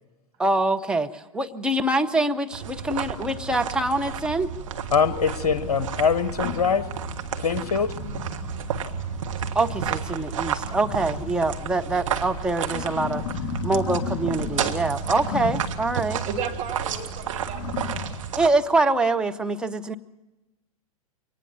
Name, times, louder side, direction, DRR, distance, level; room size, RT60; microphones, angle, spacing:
voice 1, 0.4-4.5 9.5-13.2 13.6-16.2 18.4-19.9, right 2 dB, 5° right, 5 dB, 0.7 m, -24 dB
sound 1, 2.5-18.5, right 8 dB, 60° right, 1.6 m, -32 dB
voice 2, 4.9-6.9 7.4-7.9, left 6 dB, 55° left, 12 dB, 0.9 m, -23 dB
sound 2, 5.0-18.2, left 8 dB, 35° left, 5.0 m, -36 dB
voice 3, 16.3-18.3, right 7 dB, 30° right, 3 dB, 2.1 m, -34 dB
23.5 x 19.0 x 5.8 m, 1.0 s
figure-of-eight pair, 100°, 19 cm